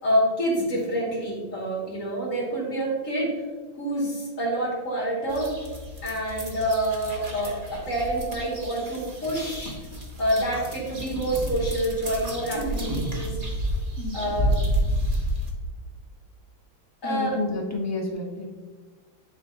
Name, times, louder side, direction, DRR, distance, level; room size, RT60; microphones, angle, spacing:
voice 1, 0.0-3.3 3.8-5.5 6.0-9.7 10.2-13.4 14.1-14.5 17.0-17.3, right 1 dB, 40° left, -4 dB, 2.5 m, -27 dB
sound 1, 5.3-15.5, equal, 45° right, 0.5 m, -30 dB
voice 2, 17.0-18.5, left 2 dB, 10° left, -4 dB, 0.8 m, -30 dB
10.5 x 4.0 x 2.7 m, 1.4 s
omnidirectional pair, 2.2 m